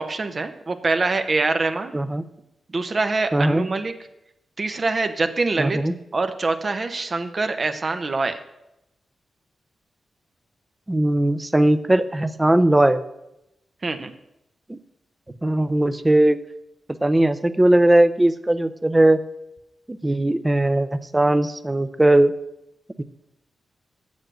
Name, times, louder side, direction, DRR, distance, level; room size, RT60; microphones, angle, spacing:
voice 1, 0.0-1.9 2.7-3.9 4.6-5.8 6.1-8.4 13.8-14.1, right 3 dB, 45° right, 8 dB, 0.9 m, -24 dB
voice 2, 1.9-2.2 3.3-3.7 5.6-5.9 10.9-13.0 14.7-14.8 15.4-16.4 17.0-19.2 19.9-22.3 23.0-23.1, right 1 dB, 20° right, 13 dB, 0.6 m, -19 dB
7.9 x 7.3 x 6.3 m, 0.88 s
cardioid pair, 60°, 0 cm